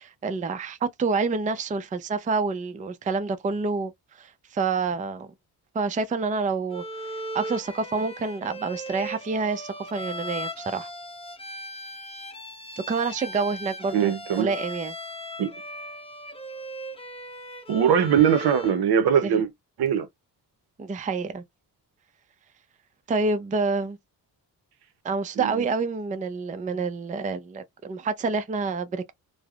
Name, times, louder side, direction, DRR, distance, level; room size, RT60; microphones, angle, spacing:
voice 1, 0.0-5.3 5.7-10.9 12.9-14.9 19.2-19.4 20.8-21.4 23.1-24.0 25.0-29.1, right 4 dB, 20° right, 0.4 m, -28 dB
Bowed string instrument, 6.7-18.9, equal, 15° left, 0.7 m, -38 dB
voice 2, 13.9-14.5 15.4-15.5 17.7-19.5 19.8-20.1 25.4-25.6, right 8 dB, 65° right, 0.7 m, -21 dB
3.2 x 2.0 x 2.3 m
cardioid pair, 80°, 41 cm